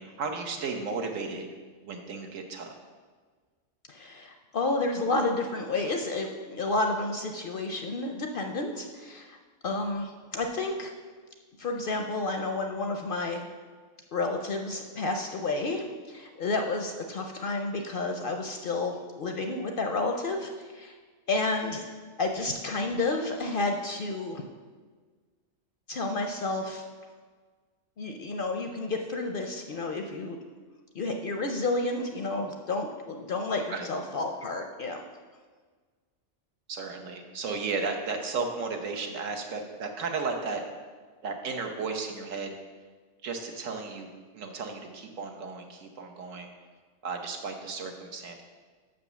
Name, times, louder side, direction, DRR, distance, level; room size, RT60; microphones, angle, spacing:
voice 1, 0.0-1.5 1.8-2.8 33.7-33.9 36.7-40.6 41.2-42.5 43.2-46.5 47.0-48.4, right 4 dB, 80° right, 4 dB, 1.3 m, -34 dB
voice 2, 3.9-9.4 9.6-10.9 11.6-13.4 14.1-20.9 21.3-21.8 22.2-24.4 25.9-26.8 28.0-30.4 30.9-35.0, left 2 dB, 55° left, 4 dB, 0.6 m, -31 dB
6.1 x 5.2 x 6.8 m, 1.5 s
omnidirectional pair, 1.3 m